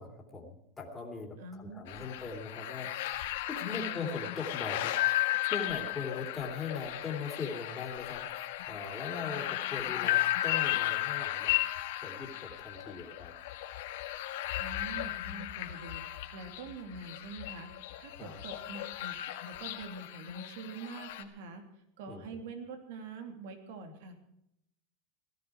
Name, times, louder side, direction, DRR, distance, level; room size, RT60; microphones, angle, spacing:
voice 1, 0.0-11.5 12.0-13.3 18.1-18.4 22.1-22.4, left 4 dB, 15° left, 0 dB, 2.8 m, -40 dB
voice 2, 1.4-2.1 3.7-4.2 14.6-21.6 22.0-24.2, right 3 dB, 75° right, 5 dB, 3.1 m, -45 dB
sound 1, 1.9-21.2, left 15 dB, 80° left, 1.7 m, -35 dB
17.5 x 13.0 x 4.8 m, 0.78 s
supercardioid pair, 150°, 0 cm